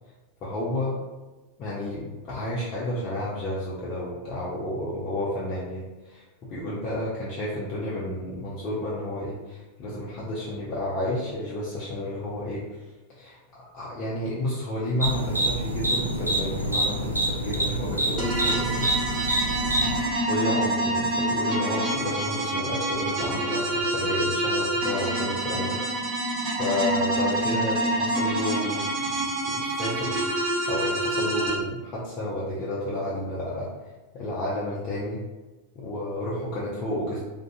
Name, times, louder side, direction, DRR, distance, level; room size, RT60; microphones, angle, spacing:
voice 1, 0.4-1.1 1.6-12.7 13.1-13.4 13.7-18.9 20.3-25.8 26.6-33.7 34.1-35.3 35.8-37.2, left 1 dB, 35° left, -7 dB, 0.5 m, -31 dB
sound 1, 15.0-20.0, right 1 dB, 85° right, 0.3 m, -26 dB
sound 2, 18.2-31.5, right 1 dB, 30° right, 0.6 m, -27 dB
2.5 x 2.4 x 2.3 m, 1.2 s
figure-of-eight pair, 90°, 0 cm